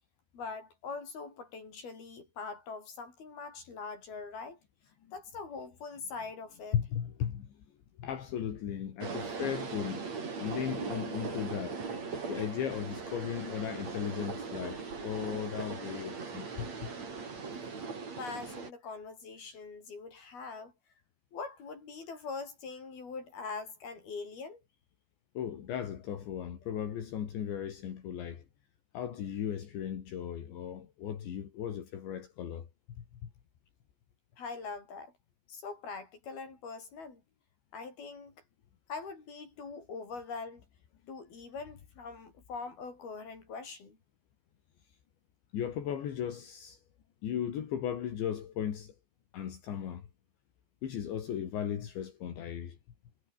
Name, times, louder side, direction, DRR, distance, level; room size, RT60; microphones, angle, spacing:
voice 1, 0.3-4.6 5.1-6.8 18.1-20.7 21.3-24.6 34.4-35.1 35.5-37.2 37.7-38.3 38.9-40.6 41.1-44.0, left 4 dB, 50° left, 7.9 m, -42 dB
voice 2, 6.7-7.6 8.0-10.1 10.4-11.8 12.3-16.9 25.3-28.5 28.9-33.3 45.5-46.8 47.2-49.0 49.3-50.1 50.8-52.8, left 9 dB, 70° left, 5.1 m, -36 dB
sound 1, 9.0-18.7, right 5 dB, 35° right, 5.3 m, -39 dB
omnidirectional pair, 5.5 m